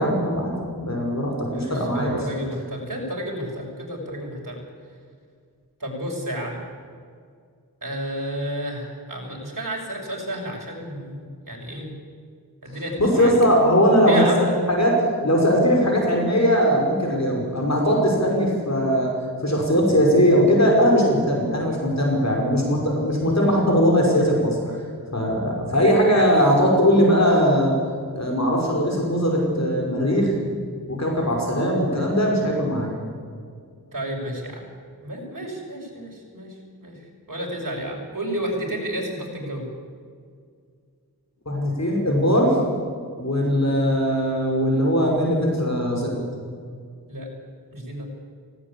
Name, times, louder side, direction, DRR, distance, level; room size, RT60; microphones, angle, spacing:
voice 1, 0.0-2.2 13.0-15.0 15.2-19.1 19.4-24.8 25.1-27.7 28.1-30.3 30.9-32.9 41.5-42.6 43.2-46.2, equal, 45° left, 0 dB, 5.7 m, -20 dB
voice 2, 1.5-4.6 5.8-6.6 7.8-11.9 12.6-13.3 14.1-14.5 33.9-34.6 35.0-36.5 36.8-36.9 37.3-39.6 47.1-47.3 47.7-48.1, right 1 dB, 55° right, -1 dB, 6.6 m, -31 dB
18.5 x 17.5 x 8.7 m, 2.1 s
wide cardioid pair, 50°, 39 cm